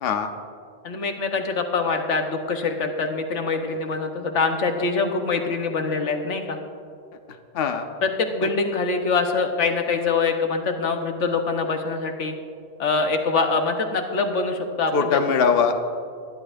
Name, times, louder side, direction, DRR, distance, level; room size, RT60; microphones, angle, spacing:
voice 1, 0.8-6.6 8.0-12.3 12.8-15.2, left 4 dB, 90° left, 5 dB, 1.4 m, -24 dB
voice 2, 7.5-7.9 14.9-15.7, left 6 dB, 60° left, 6 dB, 0.9 m, -21 dB
21.5 x 11.0 x 2.6 m, 2.4 s
omnidirectional pair, 1.2 m